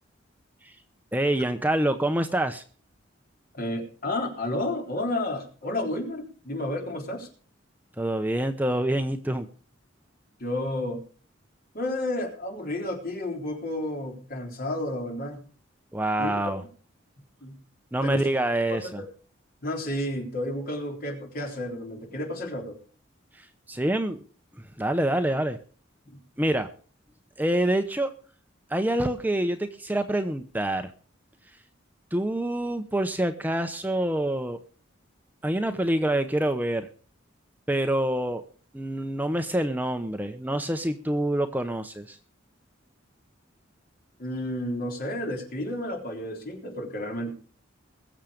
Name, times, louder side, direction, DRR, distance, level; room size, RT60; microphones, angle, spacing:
voice 1, 1.1-2.6 8.0-9.5 15.9-16.6 17.9-19.0 23.3-24.2 24.6-25.6 26.4-26.7 27.4-28.1 28.7-30.9 32.1-34.6 35.4-36.9 37.7-38.4 38.7-42.2, right 1 dB, 10° right, 7 dB, 0.7 m, -26 dB
voice 2, 3.5-7.3 10.4-11.0 11.7-15.4 16.2-16.4 17.4-17.6 18.0-18.3 18.7-19.0 19.6-22.8 26.1-26.2 44.2-47.3, left 1 dB, 45° left, 2 dB, 3.8 m, -31 dB
21.5 x 7.4 x 5.1 m, 0.41 s
head